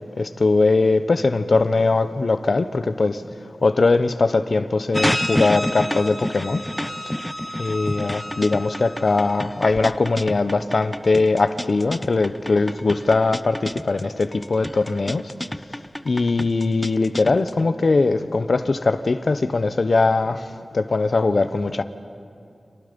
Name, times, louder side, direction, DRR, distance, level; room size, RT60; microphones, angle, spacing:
voice 1, 0.2-3.2 3.6-6.6 7.6-15.3 16.0-20.4 20.7-21.8, left 3 dB, 65° left, 1.0 m, -20 dB
sound 1, 4.9-17.6, left 1 dB, 10° left, 0.5 m, -29 dB
30.0 x 26.5 x 5.4 m
wide cardioid pair, 65°, 0 cm